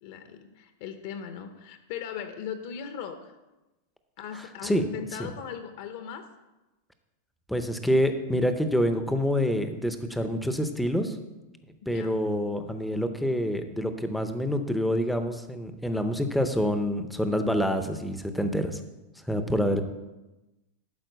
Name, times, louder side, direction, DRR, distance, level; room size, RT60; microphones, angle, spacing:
voice 1, 0.0-3.4 4.2-6.3 11.9-12.2 19.6-19.8, left 8 dB, 45° left, 8 dB, 0.7 m, -38 dB
voice 2, 7.5-11.2 11.9-18.8 19.3-19.8, equal, ahead, 8 dB, 0.6 m, -27 dB
12.0 x 4.7 x 7.9 m, 1.0 s
supercardioid pair, 180°, 0 cm